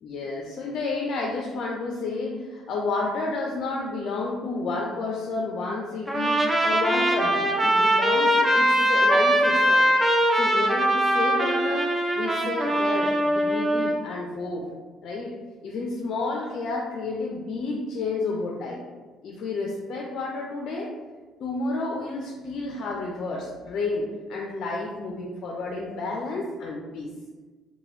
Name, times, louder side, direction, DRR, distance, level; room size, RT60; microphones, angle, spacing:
voice 1, 0.0-9.9 10.3-14.6 15.0-15.4 15.6-18.8 19.2-20.9 21.4-27.1, left 3 dB, 60° left, -1 dB, 0.4 m, -31 dB
Trumpet, 6.1-14.0, right 1 dB, 10° right, 0.4 m, -22 dB
2.9 x 2.2 x 3.1 m, 1.3 s
cardioid pair, 105°, 0 cm